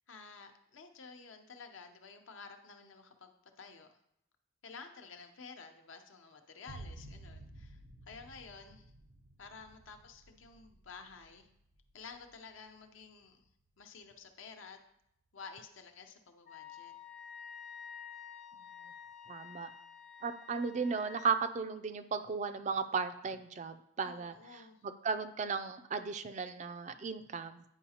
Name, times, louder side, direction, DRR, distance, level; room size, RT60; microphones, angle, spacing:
voice 1, 0.1-3.3 3.6-4.0 4.6-8.9 9.4-11.5 11.9-13.5 13.8-14.8 15.3-17.0 24.0-24.8, left 5 dB, 70° left, 6 dB, 0.7 m, -52 dB
sound 1, 6.7-14.1, right 1 dB, 80° right, 0.8 m, -54 dB
Wind instrument woodwind instrument, 16.5-21.4, left 7 dB, 35° left, 0.6 m, -50 dB
voice 2, 19.3-19.7 20.2-27.6, right 5 dB, 35° right, 11 dB, 0.3 m, -36 dB
9.8 x 4.8 x 2.8 m, 0.78 s
head